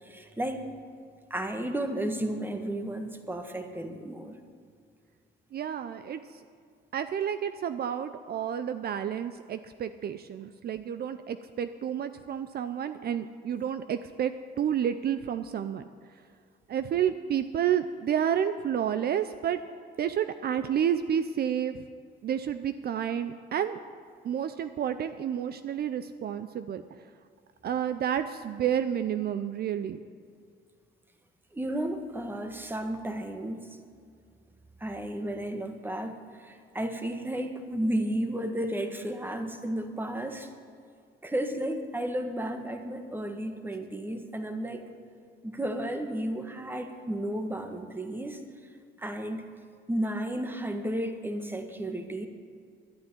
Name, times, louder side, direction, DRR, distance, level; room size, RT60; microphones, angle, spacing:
voice 1, 0.0-0.7 1.3-4.4 31.5-33.6 34.8-40.5 41.2-44.8 45.4-48.4 49.0-49.4 49.9-52.3, right 1 dB, 10° right, 6 dB, 1.5 m, -33 dB
voice 2, 5.5-6.2 6.9-14.3 14.6-15.8 16.7-19.6 20.0-21.8 22.2-23.8 24.2-26.8 27.6-30.0, right 9 dB, 55° right, 11 dB, 0.6 m, -30 dB
11.5 x 9.2 x 9.8 m, 2.2 s
cardioid pair, 100°, 19 cm